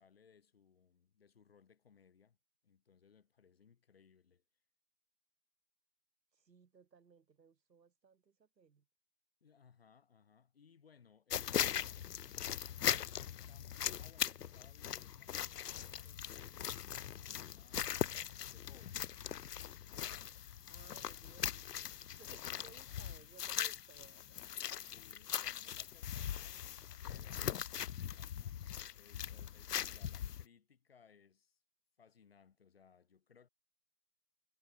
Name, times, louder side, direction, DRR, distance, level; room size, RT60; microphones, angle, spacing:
voice 1, 0.0-2.4 2.6-4.4 9.4-12.0 13.5-18.1 18.5-19.2 22.3-22.8 24.7-26.8 27.0-28.6 28.9-31.6 32.0-33.5, left 6 dB, 35° left, 2.7 m, -66 dB
voice 2, 6.3-8.8 20.3-24.4, right 6 dB, 85° right, 1.3 m, -62 dB
sound 1, 11.3-30.4, left 10 dB, 75° left, 0.6 m, -40 dB
figure-of-eight pair, 165°, 49 cm